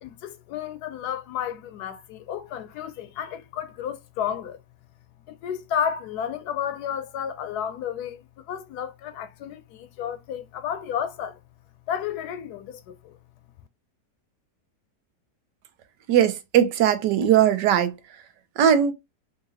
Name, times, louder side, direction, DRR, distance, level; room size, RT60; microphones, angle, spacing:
voice 1, 0.0-4.6 5.3-11.4 11.9-13.2, left 9 dB, 75° left, 1.1 m, -32 dB
voice 2, 16.1-17.9 18.6-18.9, right 9 dB, 90° right, 1.4 m, -19 dB
4.6 x 2.8 x 2.7 m
omnidirectional pair, 1.8 m